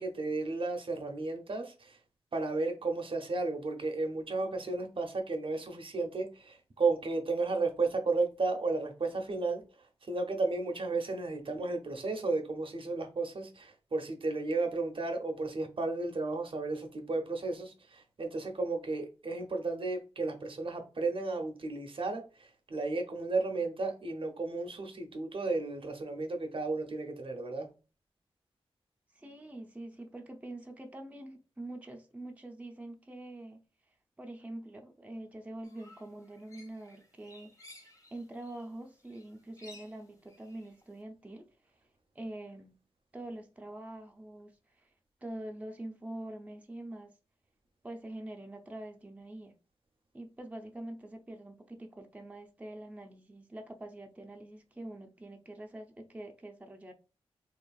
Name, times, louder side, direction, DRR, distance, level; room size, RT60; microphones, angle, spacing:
voice 1, 0.0-2.0 2.3-9.6 10.1-27.7, right 3 dB, 55° right, 0.6 m, -33 dB
voice 2, 29.1-33.6 34.2-41.8 42.1-42.8 43.1-44.9 45.2-47.1 47.8-49.5 50.1-56.9, right 1 dB, 15° right, 0.5 m, -45 dB
sound 1, 35.6-38.7 39.0-41.0, left 2 dB, 30° left, 1.1 m, -56 dB
2.9 x 2.4 x 2.3 m
cardioid pair, 45°, 11 cm